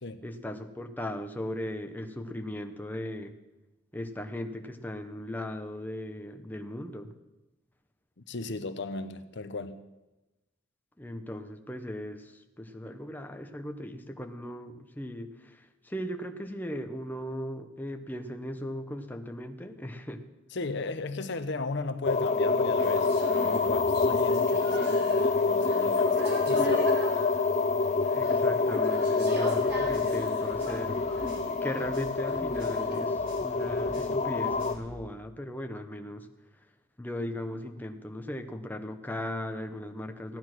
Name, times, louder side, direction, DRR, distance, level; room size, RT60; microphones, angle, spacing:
voice 1, 0.2-3.3 3.9-7.1 11.0-20.2 28.1-31.0 31.6-36.3 36.6-36.7 37.0-40.4, left 1 dB, 10° left, 5 dB, 0.8 m, -38 dB
voice 2, 8.3-9.8 20.5-27.3, left 3 dB, 60° left, 11 dB, 0.8 m, -36 dB
sound 1, 22.0-34.7, left 4 dB, 35° left, 0.5 m, -27 dB
sound 2, 22.8-32.0 32.2-33.0, equal, 55° right, 4.2 m, -40 dB
sound 3, 29.6-32.8 33.1-34.9, right 1 dB, 75° right, 4.3 m, -48 dB
15.0 x 10.0 x 6.1 m, 1.0 s
head